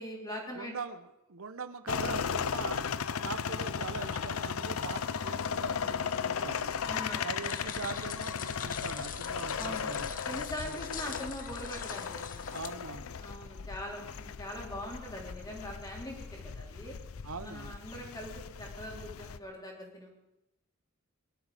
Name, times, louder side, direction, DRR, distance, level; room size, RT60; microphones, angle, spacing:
voice 1, 0.0-0.7 6.9-7.3 9.6-9.9 10.3-12.5 13.2-17.0 17.4-18.3 18.6-20.1, equal, 20° left, 0 dB, 3.5 m, -42 dB
voice 2, 0.6-2.8 3.2-6.8 7.2-10.2 10.6-10.8 12.4-13.2 17.2-17.8, right 4 dB, 80° right, 10 dB, 0.9 m, -42 dB
sound 1, 1.9-19.4, left 6 dB, 85° left, 0.6 m, -36 dB
sound 2, 7.4-12.7, left 8 dB, 40° left, 0.9 m, -44 dB
21.5 x 11.5 x 5.0 m, 0.91 s
head